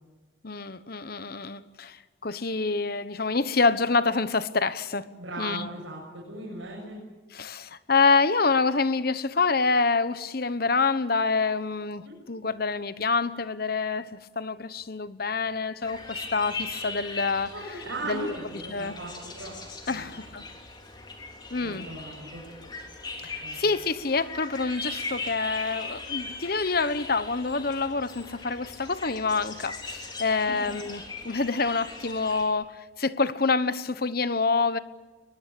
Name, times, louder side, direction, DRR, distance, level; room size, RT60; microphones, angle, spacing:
voice 1, 0.4-5.1 5.4-5.7 7.3-17.8 18.0-18.3 18.7-19.0 19.9-20.4 21.5-21.9 23.2-34.8, left 4 dB, 50° left, 1.0 m, -27 dB
voice 2, 5.2-7.0 12.1-12.2 17.5-19.5 19.9-20.1 21.6-22.4 23.4-23.6 30.5-30.6, right 2 dB, 80° right, 7.1 m, -38 dB
sound 1, 15.8-32.4, left 3 dB, 20° left, 3.5 m, -39 dB
22.5 x 21.5 x 8.5 m
head